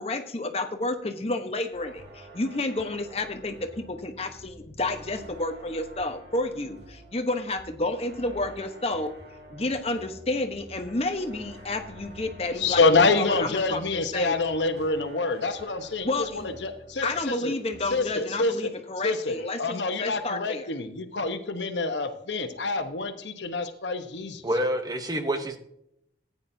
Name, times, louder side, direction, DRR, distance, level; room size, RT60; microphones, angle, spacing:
voice 1, 0.0-9.1 9.5-13.8 14.1-14.3 16.0-16.5 17.0-20.7, left 2 dB, 35° left, 6 dB, 1.0 m, -30 dB
sound 1, 1.7-17.4 17.7-18.2, equal, 70° right, 2.3 m, -48 dB
voice 2, 12.6-17.5 17.9-18.7 19.0-24.4, left 3 dB, 80° left, 8 dB, 1.0 m, -26 dB
voice 3, 24.4-25.6, right 1 dB, 20° right, 7 dB, 0.9 m, -27 dB
14.0 x 9.5 x 2.7 m, 0.77 s
head